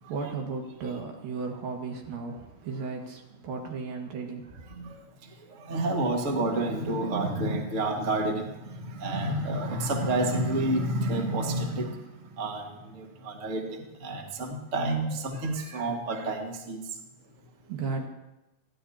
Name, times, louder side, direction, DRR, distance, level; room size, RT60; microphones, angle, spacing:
voice 1, 0.0-4.6 17.2-18.1, right 4 dB, 65° right, 1 dB, 3.4 m, -35 dB
voice 2, 5.5-12.1 12.4-16.8, right 2 dB, 85° right, 1 dB, 0.6 m, -29 dB
28.5 x 11.5 x 2.9 m, 0.98 s
omnidirectional pair, 4.6 m